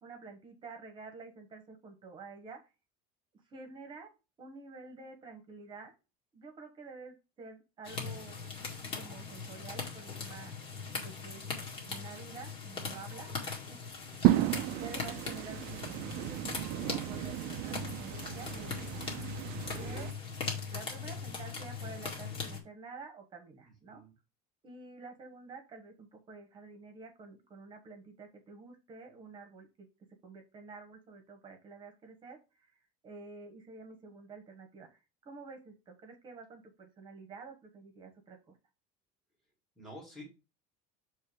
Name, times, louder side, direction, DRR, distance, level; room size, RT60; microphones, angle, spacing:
voice 1, 0.0-2.6 3.5-4.1 4.4-5.9 6.3-8.6 9.0-10.5 10.9-11.4 11.8-13.8 14.3-18.9 19.7-20.1 20.7-24.0 24.6-29.9 30.2-32.7 33.0-38.6, right 4 dB, 25° right, 5 dB, 1.3 m, -49 dB
sound 1, 7.8-22.6, left 4 dB, 30° left, 1.8 m, -40 dB
voice 2, 14.1-14.7 19.5-20.2 23.9-24.1 39.7-40.2, equal, 5° right, -3 dB, 1.8 m, -50 dB
sound 2, 14.2-20.1, right 15 dB, 55° right, 0.5 m, -33 dB
6.7 x 3.3 x 4.9 m, 0.29 s
cardioid pair, 165°, 18 cm